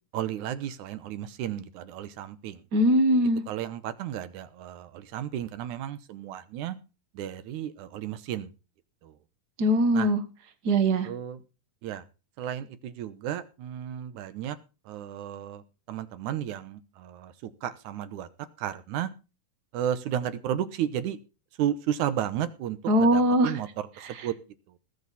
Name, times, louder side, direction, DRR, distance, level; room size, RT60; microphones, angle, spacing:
voice 1, 0.1-2.6 3.5-6.8 7.1-8.5 9.0-9.1 9.9-10.1 11.1-11.4 11.8-12.0 12.4-14.6 14.9-15.6 15.9-18.3 18.6-19.1 19.7-21.2 21.6-23.7 24.0-24.3, right 10 dB, 70° right, 13 dB, 2.3 m, -33 dB
voice 2, 2.7-3.4 9.6-10.2 10.6-11.1 22.9-23.5 24.0-24.3, right 1 dB, 50° right, 10 dB, 1.2 m, -22 dB
19.5 x 8.4 x 4.2 m, 0.32 s
omnidirectional pair, 3.8 m